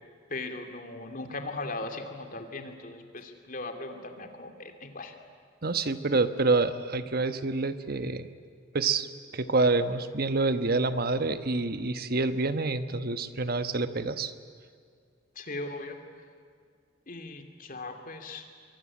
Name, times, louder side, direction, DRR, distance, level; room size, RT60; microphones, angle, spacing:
voice 1, 0.3-5.1 15.4-16.0 17.1-18.4, left 2 dB, 45° left, 5 dB, 2.6 m, -38 dB
voice 2, 5.6-8.3 8.7-9.1 9.3-14.3, right 3 dB, 50° right, 10 dB, 1.2 m, -27 dB
24.5 x 23.5 x 9.8 m, 2.1 s
head